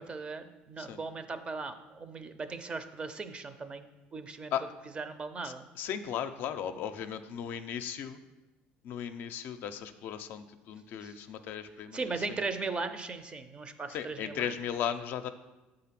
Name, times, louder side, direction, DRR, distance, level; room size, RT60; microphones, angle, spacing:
voice 1, 0.0-4.5 5.0-5.6 11.0-11.1 11.9-14.5, right 4 dB, 25° right, 10 dB, 0.6 m, -38 dB
voice 2, 5.4-8.2 8.8-12.4 13.9-15.3, left 9 dB, 60° left, 9 dB, 0.5 m, -36 dB
7.5 x 3.8 x 5.8 m, 1.1 s
cardioid pair, 110°, 4 cm